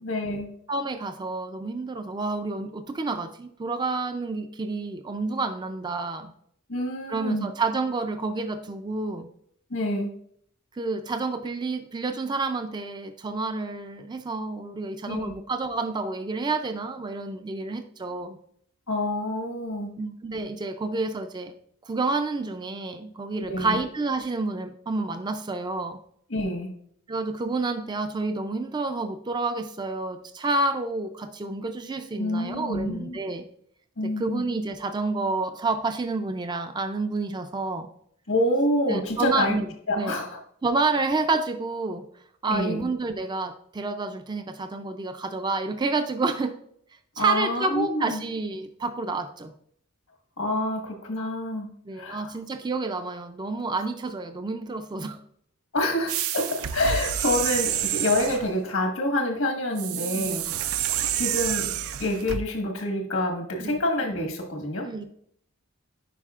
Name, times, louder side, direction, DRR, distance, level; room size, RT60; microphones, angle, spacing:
voice 1, 0.0-0.5 6.7-7.5 9.7-10.1 15.1-15.4 18.9-19.9 23.5-23.8 26.3-26.7 32.2-33.2 34.0-34.4 38.3-39.6 39.9-40.4 42.4-42.9 47.2-48.2 50.4-51.7 51.9-52.3 55.7-60.4 61.1-61.7 62.0-64.9, left 1 dB, 85° left, 2 dB, 1.5 m, -27 dB
voice 2, 0.7-6.3 7.1-9.3 10.8-18.4 20.0-21.5 21.8-26.0 27.1-33.4 34.0-37.9 38.9-39.7 40.0-40.2 40.6-42.0 42.4-46.5 47.2-49.5 51.9-55.2 59.9-60.5 63.6-63.8 64.8-65.0, right 3 dB, 20° right, 8 dB, 0.4 m, -29 dB
sound 1, 56.1-58.5 59.8-62.4, right 10 dB, 90° right, 0.4 m, -28 dB
9.9 x 4.8 x 2.4 m, 0.66 s
head